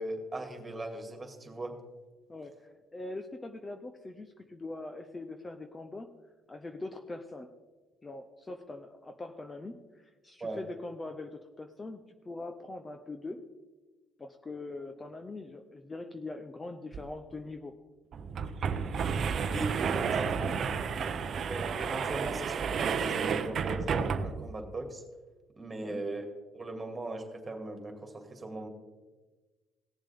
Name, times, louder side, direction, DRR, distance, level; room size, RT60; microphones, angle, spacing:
voice 1, 0.0-1.7 10.4-10.6 19.4-19.7 20.0-20.5 21.5-25.0 25.6-26.2 26.5-28.7, right 2 dB, 20° right, 4 dB, 2.3 m, -39 dB
voice 2, 2.3-6.1 6.5-7.5 8.0-13.5 14.2-17.7 20.0-20.6 21.0-21.2 25.8-26.0, left 2 dB, 20° left, 6 dB, 0.7 m, -42 dB
sound 1, 16.9-17.0 17.3-17.4 18.1-24.5, right 6 dB, 50° right, 0.7 m, -31 dB
18.0 x 7.2 x 3.6 m, 1.3 s
cardioid pair, 95°, 0 cm